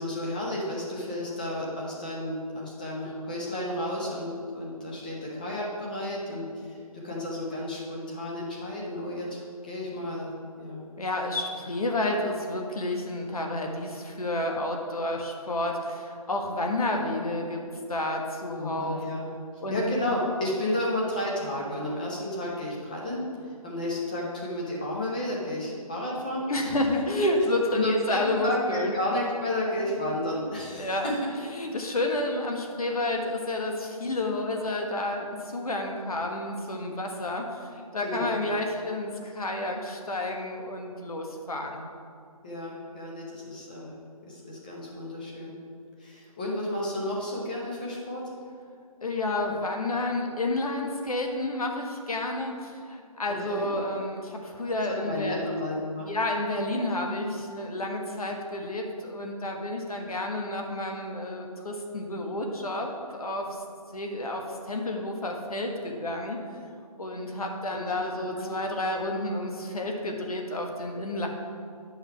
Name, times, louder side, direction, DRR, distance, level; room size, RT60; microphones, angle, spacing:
voice 1, 0.0-6.8 7.0-10.3 10.6-10.8 18.6-19.3 19.7-23.2 23.6-26.8 27.7-31.2 38.0-38.4 42.4-43.9 44.3-45.5 46.0-48.2 53.3-53.7 55.0-56.1 68.1-68.5, left 1 dB, 15° left, -4 dB, 0.8 m, -32 dB
voice 2, 11.0-17.6 17.9-19.0 19.6-19.8 26.5-28.9 30.7-41.8 49.0-55.5 56.0-63.6 63.9-66.4 67.0-71.3, left 1 dB, 70° left, 2 dB, 1.5 m, -30 dB
10.0 x 5.6 x 4.6 m, 2.3 s
figure-of-eight pair, 170°, 20 cm